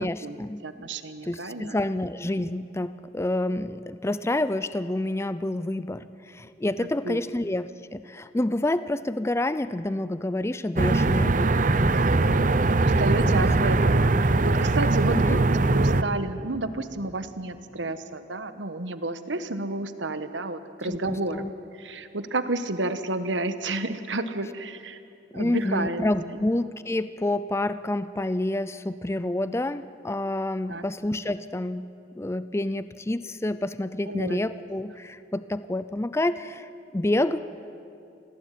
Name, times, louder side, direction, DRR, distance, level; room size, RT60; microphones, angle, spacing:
voice 1, 0.0-0.9 1.2-12.1 13.4-13.8 15.3-15.4 20.8-21.5 25.3-37.5, left 1 dB, 15° left, 14 dB, 0.5 m, -28 dB
voice 2, 0.6-1.7 6.8-7.2 12.8-21.4 21.8-25.0 25.3-26.1 30.7-30.9 34.1-34.4, right 2 dB, 85° right, 11 dB, 1.3 m, -31 dB
sound 1, 10.8-16.0, right 2 dB, 45° right, 0.7 m, -21 dB
26.0 x 16.5 x 9.3 m, 2.6 s
head